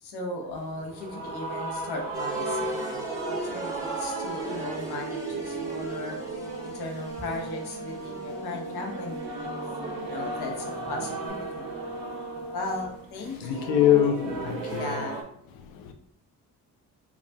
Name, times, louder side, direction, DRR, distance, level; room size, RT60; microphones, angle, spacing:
voice 1, 0.0-6.2 6.6-9.6 10.0-11.7 12.5-14.0 14.4-15.2, left 2 dB, 55° left, 0.9 m, -37 dB
sound 1, 0.6-15.2, right 3 dB, 50° right, 0.7 m, -36 dB
sound 2, 2.1-11.3, left 1 dB, 5° right, 1.0 m, -41 dB
sound 3, 4.3-13.1, right 3 dB, 30° left, 0.8 m, -40 dB
voice 2, 13.3-15.1 15.5-15.9, left 10 dB, 80° left, 0.6 m, -24 dB
3.3 x 2.4 x 2.2 m
hypercardioid pair, 45°, 45 cm